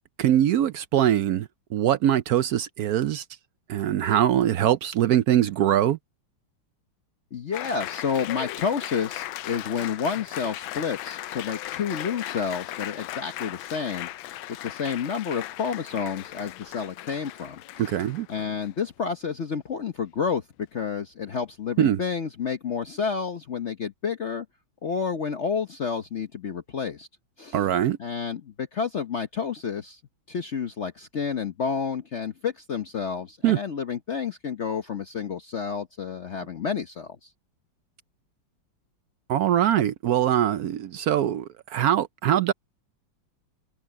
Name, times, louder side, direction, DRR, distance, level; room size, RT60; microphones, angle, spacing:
voice 1, 0.2-3.2 3.7-6.0 17.8-18.3 21.8-22.0 27.5-28.0 33.4-33.6 39.3-42.5, right 11 dB, 70° right, 0.9 m, -22 dB
voice 2, 7.3-14.1 14.6-17.9 18.3-20.4 20.7-24.5 24.8-27.1 27.4-27.6 28.0-30.0 30.3-37.3, left 6 dB, 50° left, 0.9 m, -30 dB
Applause, 7.5-18.9, left 15 dB, 85° left, 1.4 m, -37 dB
omnidirectional pair, 2.1 m